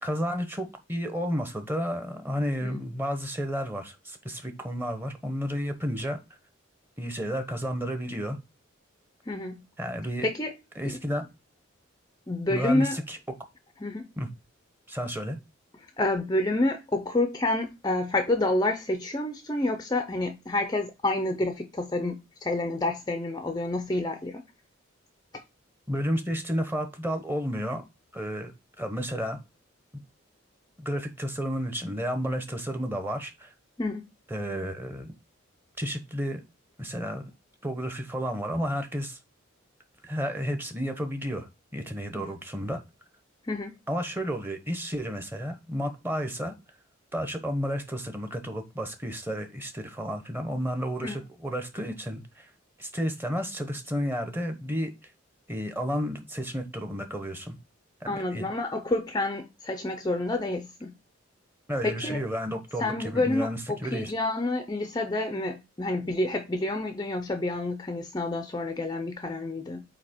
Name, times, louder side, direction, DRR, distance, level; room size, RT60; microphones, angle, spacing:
voice 1, 0.0-6.2 7.0-8.4 9.8-10.3 10.8-11.3 12.5-13.2 14.2-14.3 14.9-15.4 25.9-27.8 28.1-28.5 28.8-29.4 30.8-33.5 34.3-35.1 35.8-36.4 36.8-37.3 37.6-39.2 40.0-42.8 43.9-46.5 47.1-52.5 52.8-54.9 55.5-57.6 58.1-58.5 61.7-64.1, equal, 10° right, 1.0 m, -31 dB
voice 2, 9.3-9.6 10.2-10.5 10.8-11.0 12.3-13.0 13.8-14.1 16.0-24.4 33.8-34.0 42.1-42.3 43.5-43.8 51.0-51.2 58.1-60.9 61.8-62.2 62.8-69.8, left 2 dB, 20° left, 0.5 m, -29 dB
8.3 x 2.9 x 4.3 m
head